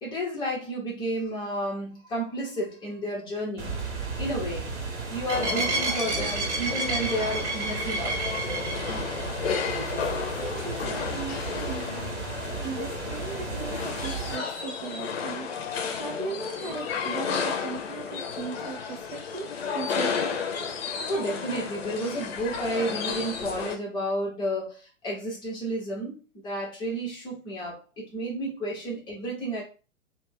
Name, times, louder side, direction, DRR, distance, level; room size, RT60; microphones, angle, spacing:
voice 1, 0.0-3.7 4.2-4.7 5.1-8.3 21.1-29.6, right 1 dB, 10° left, -3 dB, 0.7 m, -31 dB
sound 1, 3.6-14.4, right 3 dB, 55° right, 1.0 m, -32 dB
sound 2, 5.3-23.8, left 6 dB, 50° left, 0.6 m, -33 dB
voice 2, 9.7-12.1 12.6-20.4, right 4 dB, 40° right, 2 dB, 0.4 m, -38 dB
2.4 x 2.1 x 3.6 m, 0.35 s
figure-of-eight pair, 115°, 40 cm